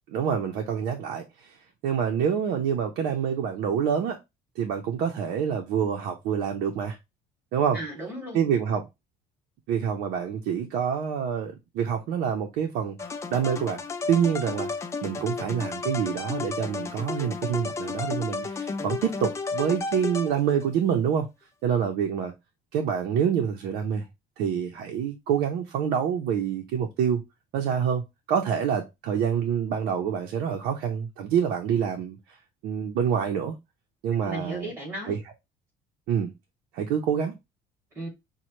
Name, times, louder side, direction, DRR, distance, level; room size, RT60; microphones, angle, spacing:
voice 1, 0.1-1.6 1.8-4.2 4.6-7.0 7.5-7.8 8.3-8.8 9.7-13.0 13.3-13.8 14.1-14.7 15.0-21.3 21.6-22.3 22.7-24.0 24.4-27.2 27.5-28.0 28.3-32.2 32.6-33.6 34.0-34.7 35.1-35.2 36.1-36.3 36.7-37.4, right 8 dB, 75° right, 0.6 m, -26 dB
voice 2, 7.7-8.4 34.2-35.2 37.9-38.1, right 1 dB, 15° right, 2.4 m, -35 dB
sound 1, 13.0-20.7, left 4 dB, 20° left, 0.4 m, -33 dB
5.3 x 2.1 x 3.0 m
cardioid pair, 155°, 15 cm